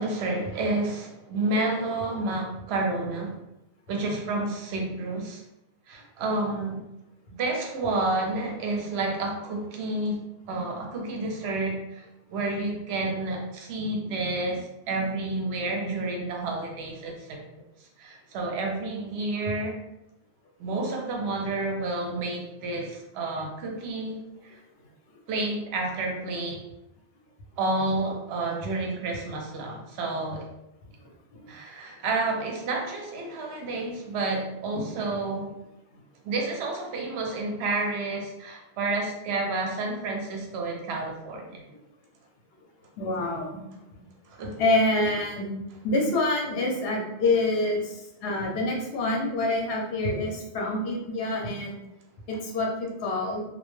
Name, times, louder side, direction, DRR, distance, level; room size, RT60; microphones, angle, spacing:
voice 1, 0.0-3.4 3.9-5.4 5.9-6.8 7.3-10.2 10.5-17.4 18.0-19.8 20.6-24.2 24.4-24.6 25.3-26.6 27.6-30.5 31.5-35.5 36.2-41.6 44.3-44.6, right 2 dB, 70° right, 1 dB, 0.8 m, -30 dB
voice 2, 31.0-31.5 35.9-36.0 41.7-41.8 43.0-44.0 44.4-45.5 45.8-51.8 52.3-53.4, left 2 dB, 65° left, -1 dB, 0.8 m, -27 dB
2.2 x 2.1 x 3.0 m, 0.89 s
omnidirectional pair, 1.1 m